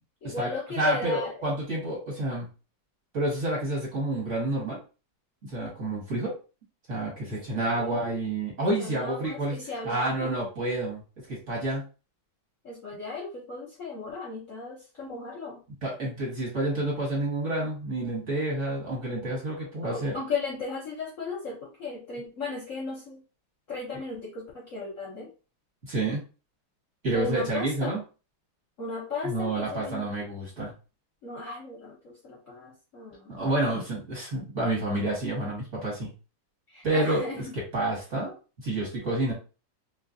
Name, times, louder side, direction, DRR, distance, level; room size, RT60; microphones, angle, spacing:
voice 1, 0.2-1.3 7.6-8.2 8.6-10.3 12.6-15.6 19.8-23.2 23.7-25.3 27.1-28.0 28.8-30.1 31.2-33.3 36.7-37.6, left 4 dB, 55° left, -3 dB, 0.9 m, -36 dB
voice 2, 0.8-2.5 3.1-4.8 5.5-6.3 6.9-9.6 9.8-11.0 11.3-11.8 15.8-20.1 25.9-26.2 27.0-28.0 29.2-30.7 33.3-36.1 36.8-38.3 38.6-39.3, right 2 dB, 40° right, -4 dB, 1.5 m, -29 dB
3.2 x 3.1 x 2.6 m, 0.33 s
omnidirectional pair, 2.2 m